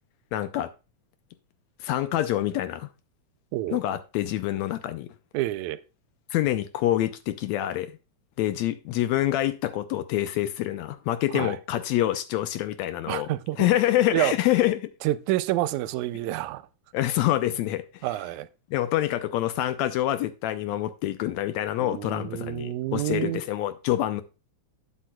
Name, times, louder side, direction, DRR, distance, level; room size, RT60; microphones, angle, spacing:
voice 1, 0.3-0.7 1.8-2.9 3.7-5.1 6.3-7.9 8.4-13.3 13.6-14.9 16.9-18.1 18.7-24.2, left 13 dB, 80° left, 1.7 m, -26 dB
voice 2, 5.3-5.8 11.3-11.6 13.1-13.7 14.1-14.3 15.0-16.7 18.0-18.5 21.8-23.4, right 15 dB, 85° right, 1.9 m, -28 dB
12.0 x 8.4 x 2.3 m
omnidirectional pair, 3.5 m